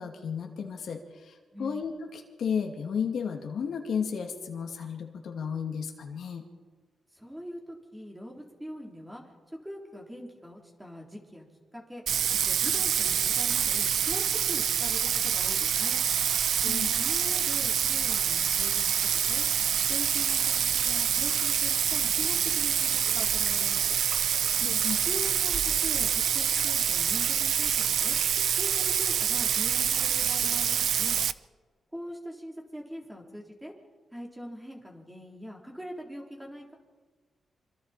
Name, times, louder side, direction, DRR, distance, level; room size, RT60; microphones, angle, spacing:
voice 1, 0.0-6.4 16.7-16.9 24.6-25.0, left 6 dB, 65° left, 2 dB, 2.4 m, -33 dB
voice 2, 1.5-1.9 7.1-9.2 9.5-11.5 11.7-12.0 12.4-16.0 16.6-19.0 19.3-19.4 19.9-23.8 24.6-31.2 31.9-33.7 34.1-36.7, equal, 5° right, -1 dB, 3.6 m, -42 dB
Bathtub (filling or washing), 12.1-31.3, right 8 dB, 75° right, 0.6 m, -26 dB
26.5 x 26.0 x 4.4 m, 1.4 s
wide cardioid pair, 165°, 0 cm